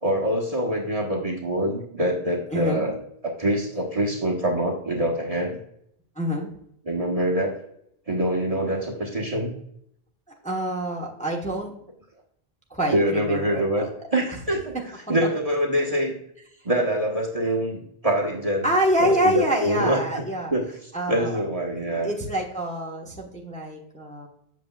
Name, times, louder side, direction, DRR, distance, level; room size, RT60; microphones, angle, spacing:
voice 1, 0.0-3.0 3.2-5.6 6.8-7.5 8.1-9.5 12.9-13.8 14.1-14.7 15.1-16.1 16.6-18.7 19.0-20.0 20.5-20.7 21.1-22.1, right 1 dB, 35° right, -1 dB, 1.3 m, -25 dB
voice 2, 2.5-2.8 6.2-6.5 10.4-11.7 12.7-13.9 18.6-20.5 20.9-21.4 22.0-24.3, right 1 dB, 5° left, -2 dB, 1.1 m, -26 dB
8.2 x 6.8 x 2.3 m, 0.71 s
omnidirectional pair, 1.1 m